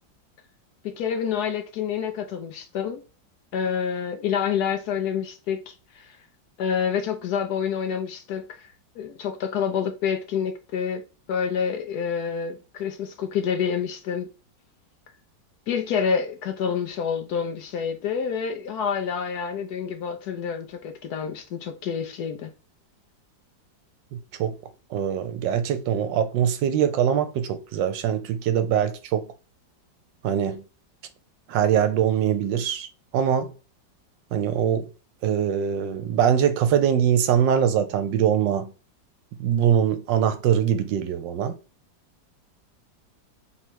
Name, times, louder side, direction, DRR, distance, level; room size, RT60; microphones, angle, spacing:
voice 1, 0.8-3.0 3.5-6.2 6.6-8.7 9.0-11.0 11.3-14.3 15.7-22.5, left 7 dB, 70° left, 1.0 m, -28 dB
voice 2, 24.9-29.3 30.2-30.6 31.5-32.9 33.1-33.5 34.3-34.9 35.2-38.7 39.4-41.6, right 9 dB, 80° right, 1.3 m, -22 dB
3.6 x 3.1 x 4.5 m
omnidirectional pair, 2.0 m